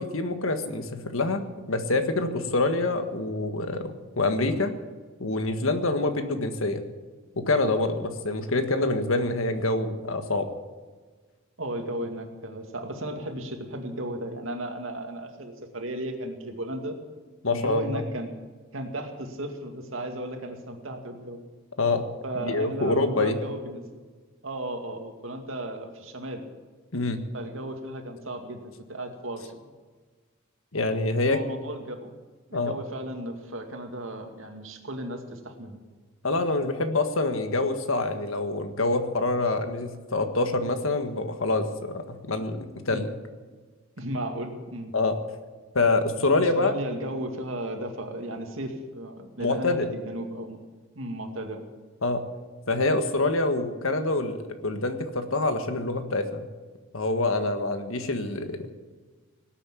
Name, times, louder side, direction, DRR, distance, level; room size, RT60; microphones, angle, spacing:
voice 1, 0.0-1.4 1.7-4.7 5.2-6.8 7.3-10.5 17.4-18.0 21.8-22.1 22.4-23.4 26.9-27.2 30.7-31.4 32.5-32.7 36.2-43.1 44.9-45.2 45.7-46.7 49.4-49.9 52.0-52.2 52.7-54.4 54.6-56.5 56.9-58.7, left 2 dB, 75° left, 8 dB, 1.7 m, -26 dB
voice 2, 11.6-17.0 17.5-18.3 18.7-21.4 22.2-24.0 24.4-26.5 27.3-29.6 31.3-32.1 32.5-35.8 42.9-43.1 44.0-44.9 46.4-50.6 50.9-51.6, right 1 dB, 65° right, 4 dB, 2.3 m, -35 dB
19.0 x 8.8 x 8.5 m, 1.4 s
head